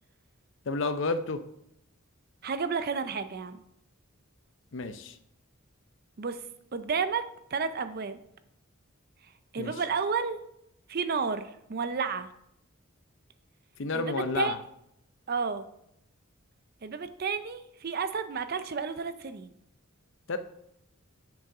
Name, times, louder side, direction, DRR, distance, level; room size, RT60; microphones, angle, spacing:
voice 1, 0.7-1.4 4.7-5.1 9.6-9.7 13.8-14.6 20.3-20.4, left 3 dB, 60° left, 10 dB, 0.6 m, -30 dB
voice 2, 2.4-3.6 6.2-6.4 6.7-8.2 9.5-10.4 10.9-12.3 13.9-14.5 15.3-15.7 16.8-19.5, right 5 dB, 45° right, 11 dB, 0.5 m, -31 dB
7.2 x 6.2 x 4.8 m, 0.78 s
head